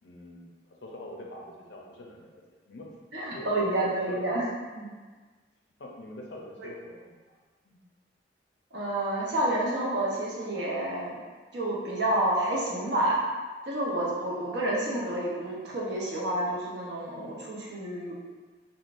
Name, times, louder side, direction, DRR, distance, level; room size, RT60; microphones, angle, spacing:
voice 1, 0.0-2.9 3.2-4.2 5.8-7.4 7.6-7.8, left 1 dB, 85° left, -1 dB, 0.6 m, -45 dB
voice 2, 3.1-4.4 4.7-4.9 6.6-6.7 8.7-11.2 11.5-13.2 13.7-18.1, right 1 dB, 80° right, -5 dB, 0.8 m, -29 dB
3.7 x 2.2 x 2.5 m, 1.4 s
head